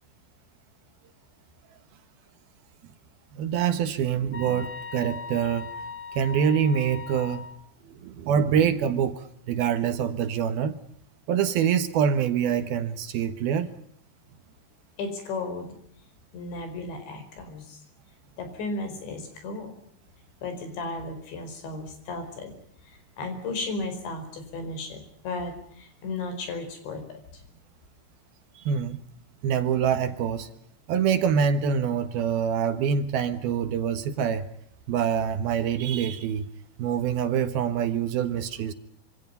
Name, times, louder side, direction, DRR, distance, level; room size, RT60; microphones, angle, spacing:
voice 1, 3.3-5.7 6.2-7.4 7.9-10.8 11.3-13.7 28.6-29.0 29.4-30.5 30.9-34.5 34.9-36.5 36.8-38.7, right 7 dB, 65° right, 10 dB, 2.8 m, -25 dB
sound 1, 4.3-7.6, left 5 dB, 40° left, 1.0 m, -39 dB
voice 2, 15.0-15.7 16.3-17.8 18.4-19.7 20.4-22.5 23.2-27.2, left 3 dB, 80° left, 8 dB, 7.0 m, -34 dB
26.5 x 25.5 x 5.6 m, 0.66 s
omnidirectional pair, 5.1 m